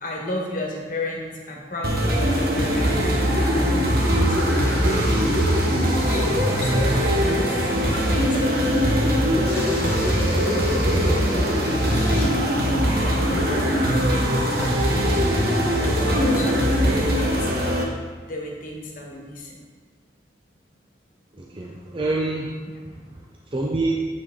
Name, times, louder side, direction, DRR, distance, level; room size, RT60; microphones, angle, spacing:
voice 1, 0.0-5.3 6.1-9.1 9.7-10.2 10.9-12.4 12.9-14.9 15.1-15.3 15.7-17.5 18.3-19.6 22.7-22.8, left 1 dB, 50° left, -1 dB, 1.3 m, -34 dB
sound 1, 1.8-17.8, equal, 55° right, 1.0 m, -21 dB
sound 2, 4.8-8.9 9.5-12.3, left 1 dB, 15° left, 1.6 m, -39 dB
voice 2, 21.3-24.0, right 2 dB, 30° right, -2 dB, 0.6 m, -28 dB
8.4 x 6.0 x 3.7 m, 1.5 s
head